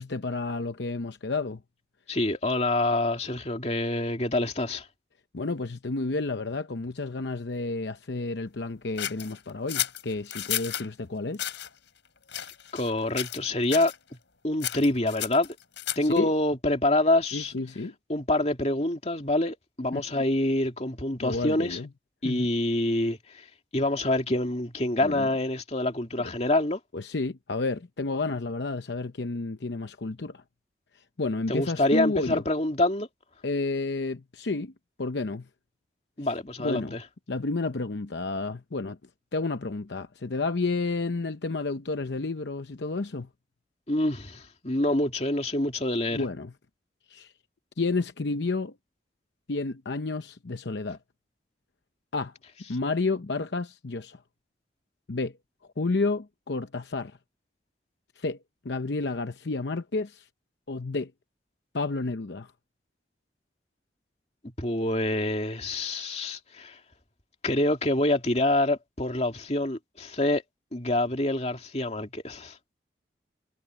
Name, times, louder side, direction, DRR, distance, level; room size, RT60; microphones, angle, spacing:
voice 1, 0.0-1.6 5.3-11.5 16.0-16.3 17.3-17.9 19.9-20.0 21.2-21.9 22.2-22.5 25.0-25.3 26.2-26.3 26.9-30.4 30.9-32.4 33.4-34.7 35.0-35.5 36.6-37.0 37.3-39.0 39.3-43.3 46.1-46.5 47.1-47.3 47.8-48.8 49.5-51.0 52.1-52.3 52.7-54.2 55.1-55.4 55.8-57.2 58.2-58.4 58.6-60.3 60.7-61.1 61.7-62.5, left 3 dB, 70° left, 0.8 m, -31 dB
voice 2, 2.1-4.9 12.7-13.9 14.4-15.6 16.0-17.5 18.1-21.8 22.2-23.5 23.7-26.8 31.5-33.1 36.2-37.0 43.9-46.2 64.4-66.8 67.4-70.4 70.7-72.6, left 1 dB, 35° left, 2.7 m, -26 dB
sound 1, 9.0-10.9 11.3-11.7 12.3-12.9 13.2-13.4 13.7-14.0 14.6-16.2, left 12 dB, 85° left, 4.4 m, -32 dB
head